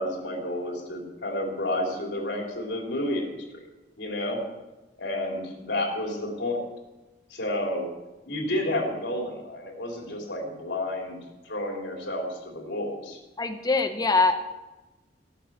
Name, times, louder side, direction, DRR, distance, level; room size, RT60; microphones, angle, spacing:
voice 1, 0.0-3.3 4.0-4.4 5.0-6.6 7.3-7.9 8.3-11.2 11.4-13.2, left 1 dB, 85° left, 0 dB, 3.5 m, -30 dB
voice 2, 13.4-14.4, left 3 dB, 25° left, 8 dB, 1.1 m, -23 dB
15.5 x 9.0 x 7.4 m, 1.1 s
head